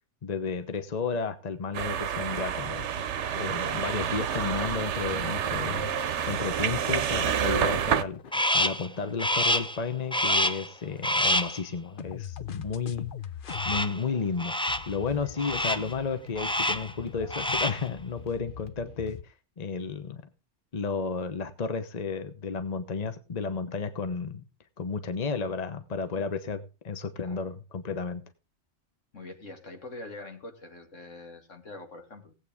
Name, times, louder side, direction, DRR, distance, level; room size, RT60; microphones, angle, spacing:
voice 1, 0.2-2.9 3.4-5.9 6.2-13.1 13.6-14.5 14.9-19.2 19.6-20.2 20.7-24.4 24.8-28.2, left 5 dB, 35° left, 9 dB, 1.1 m, -32 dB
sound 1, 1.7-8.0, right 8 dB, 70° right, 1.1 m, -29 dB
sound 2, 3.0-8.9 12.0-13.8 14.7-19.2, left 9 dB, 50° left, 0.8 m, -44 dB
Crow, 8.3-8.9 9.2-9.8 10.1-10.7 11.0-11.6 13.5-14.0 14.4-14.9 15.4-15.9 16.4-16.9 17.2-17.9, left 1 dB, 5° left, 0.4 m, -27 dB
voice 2, 29.1-32.3, left 2 dB, 80° left, 4 dB, 2.7 m, -44 dB
18.5 x 8.3 x 3.6 m, 0.31 s
omnidirectional pair, 1.3 m